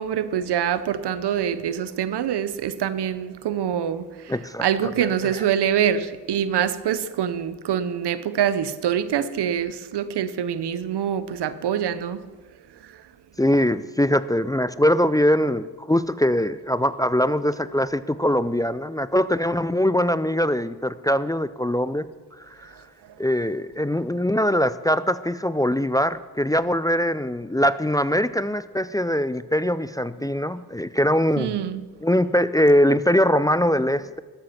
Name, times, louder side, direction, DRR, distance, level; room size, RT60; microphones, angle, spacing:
voice 1, 0.0-4.3 4.6-12.3 12.9-13.0 31.4-31.8, right 9 dB, 85° right, 0.7 m, -25 dB
voice 2, 4.3-4.7 13.4-22.1 23.2-31.6 32.0-34.2, equal, 10° left, 0.4 m, -22 dB
13.0 x 7.8 x 5.8 m
cardioid pair, 50°, 39 cm